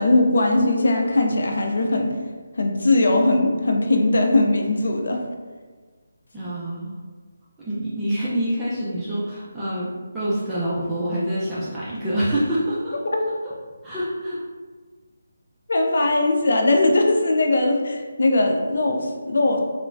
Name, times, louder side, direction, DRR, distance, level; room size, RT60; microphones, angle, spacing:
voice 1, 0.0-2.2 2.6-5.2 15.7-19.6, left 2 dB, 65° left, 3 dB, 0.4 m, -20 dB
voice 2, 6.3-6.9 7.6-13.0 13.8-14.4, right 1 dB, 10° right, -11 dB, 0.5 m, -26 dB
3.0 x 2.1 x 2.5 m, 1.4 s
figure-of-eight pair, 160°, 0 cm